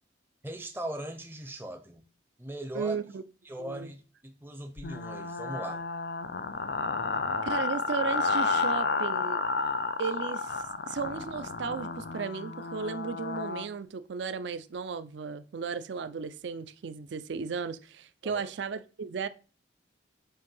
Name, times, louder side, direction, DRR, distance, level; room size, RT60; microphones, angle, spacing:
voice 1, 0.4-2.0 2.4-3.0 3.4-5.8 18.2-18.5, right 1 dB, 10° right, 0.5 m, -39 dB
voice 2, 2.7-3.2 3.6-3.9 7.4-9.4 10.0-19.3, right 5 dB, 75° right, 0.4 m, -35 dB
sound 1, 4.8-13.7, left 4 dB, 60° left, 0.5 m, -31 dB
7.8 x 2.6 x 5.4 m
head